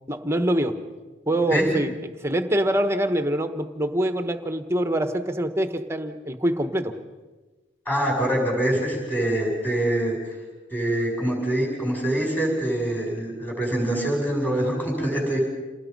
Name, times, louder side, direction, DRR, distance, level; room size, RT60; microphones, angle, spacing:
voice 1, 0.1-0.8 1.3-1.9 2.2-6.9, right 1 dB, 15° right, 8 dB, 1.2 m, -24 dB
voice 2, 7.9-10.1 10.7-15.4, right 1 dB, 10° left, -1 dB, 6.4 m, -24 dB
28.0 x 19.0 x 5.4 m, 1.2 s
head